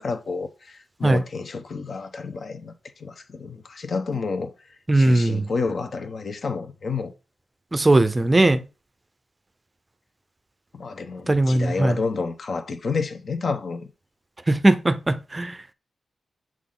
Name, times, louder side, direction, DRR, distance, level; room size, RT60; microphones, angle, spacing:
voice 1, 0.0-4.5 4.9-7.1 10.7-13.9, left 4 dB, 50° left, 1.0 m, -30 dB
voice 2, 4.9-5.5 7.7-8.6 11.3-12.0 14.5-15.6, right 2 dB, 20° right, 0.6 m, -19 dB
7.5 x 4.0 x 3.8 m
wide cardioid pair, 140°, 0 cm